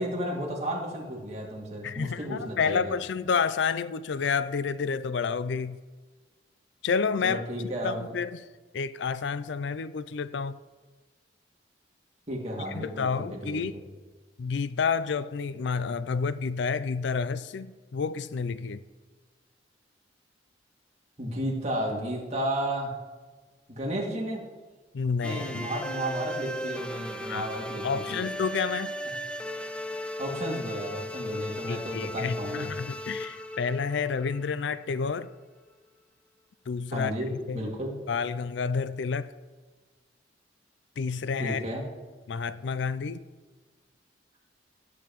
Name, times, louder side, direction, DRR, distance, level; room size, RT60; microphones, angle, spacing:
voice 1, 0.0-2.9 7.2-8.0 12.3-13.7 21.2-22.9 23.7-24.5 25.2-28.2 30.2-32.7 36.9-38.0 41.4-41.9, equal, 35° right, -2 dB, 2.4 m, -33 dB
voice 2, 1.8-5.8 6.8-7.4 7.8-8.4 8.7-10.6 12.6-13.7 14.4-18.8 24.9-25.7 27.2-27.5 27.8-28.9 31.7-35.3 36.7-37.6 38.1-39.3 41.0-41.6 42.3-43.2, left 5 dB, 70° left, 15 dB, 0.4 m, -30 dB
sound 1, 25.2-35.1, equal, 5° left, 0.6 m, -36 dB
18.0 x 7.9 x 3.1 m, 1.3 s
head